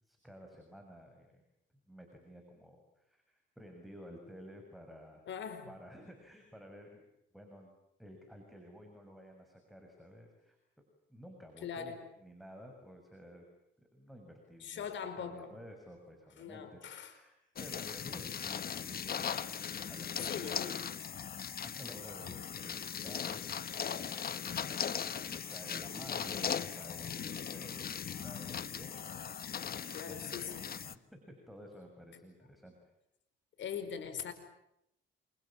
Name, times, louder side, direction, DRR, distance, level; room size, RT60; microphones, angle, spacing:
voice 1, 0.0-1.4 1.9-5.2 5.7-7.0 7.3-7.7 8.0-10.6 11.1-13.4 13.8-20.7 21.6-23.5 23.8-29.3 29.9-32.9, equal, ahead, 2 dB, 6.6 m, -53 dB
voice 2, 5.3-5.7 11.6-12.0 14.6-15.5 16.4-17.1 20.3-20.8 29.9-30.7 32.1-32.2 33.6-34.3, left 7 dB, 70° left, 10 dB, 5.2 m, -41 dB
sound 1, 17.6-30.9, left 8 dB, 50° left, 1.3 m, -39 dB
28.5 x 28.0 x 7.4 m, 0.81 s
cardioid pair, 90°, 20 cm